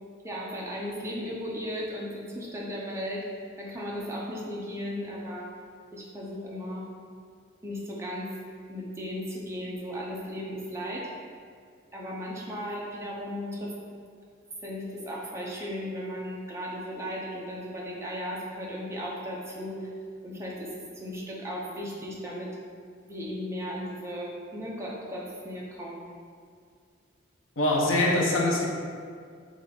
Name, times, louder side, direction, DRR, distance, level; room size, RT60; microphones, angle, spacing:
voice 1, 0.2-5.5 5.9-6.8 7.6-8.3 8.7-11.1 11.9-13.7 14.6-19.9 20.2-22.5 23.0-26.2, equal, 15° right, -5 dB, 0.8 m, -36 dB
voice 2, 27.6-28.7, left 1 dB, 80° left, -1 dB, 0.9 m, -23 dB
7.3 x 2.6 x 5.0 m, 2.2 s
head